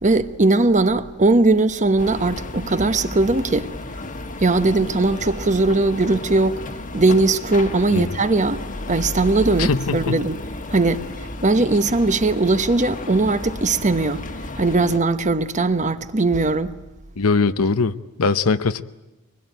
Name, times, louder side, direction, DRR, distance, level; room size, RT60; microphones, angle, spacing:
voice 1, 0.0-3.7 4.4-6.6 6.9-10.4 10.7-11.1 11.4-14.2 14.6-16.7, right 2 dB, 35° right, 1.0 m, -19 dB
sound 1, 2.0-15.0, left 2 dB, 40° left, 1.4 m, -33 dB
voice 2, 9.6-10.2 17.2-18.8, left 4 dB, 85° left, 0.8 m, -21 dB
24.5 x 20.5 x 9.3 m
head